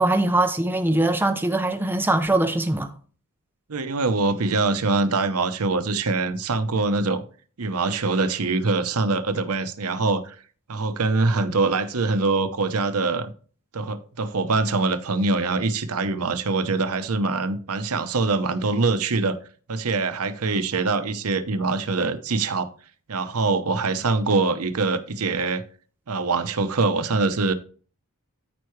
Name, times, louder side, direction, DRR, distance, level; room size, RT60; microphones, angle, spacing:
voice 1, 0.0-2.9, right 2 dB, 10° right, 0.7 m, -22 dB
voice 2, 3.7-7.2 7.6-10.4 10.7-13.3 13.7-19.4 19.7-22.7 23.1-25.6 26.1-27.5, right 3 dB, 75° right, 0.8 m, -24 dB
13.5 x 4.7 x 3.2 m
head